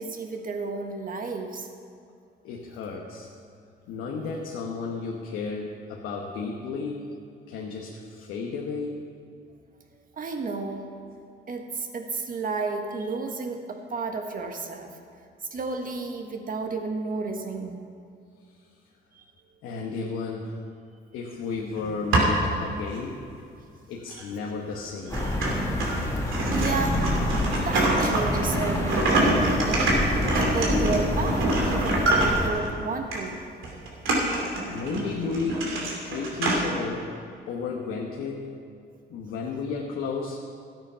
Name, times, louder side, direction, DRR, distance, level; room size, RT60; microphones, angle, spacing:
voice 1, 0.0-2.0 10.1-10.8 11.5-14.9 15.5-17.8 19.1-19.2 26.5-27.2 27.6-33.4, right 3 dB, 45° right, 4 dB, 1.5 m, -32 dB
voice 2, 2.4-3.3 3.9-7.0 7.5-9.0 19.6-20.6 21.1-23.2 23.9-25.2 34.7-35.7 36.0-37.1 37.5-38.5 39.1-40.4, left 4 dB, 90° left, -1 dB, 1.2 m, -33 dB
sound 1, 21.8-22.5 23.1-23.2 24.1-24.2 24.7-24.8 25.1-32.7 33.1-33.3 33.6-36.6, right 2 dB, 80° right, 2.7 m, -25 dB
sound 2, 25.1-32.5, left 1 dB, 15° left, 1.7 m, -28 dB
13.0 x 9.2 x 5.7 m, 2.4 s
cardioid pair, 90°, 20 cm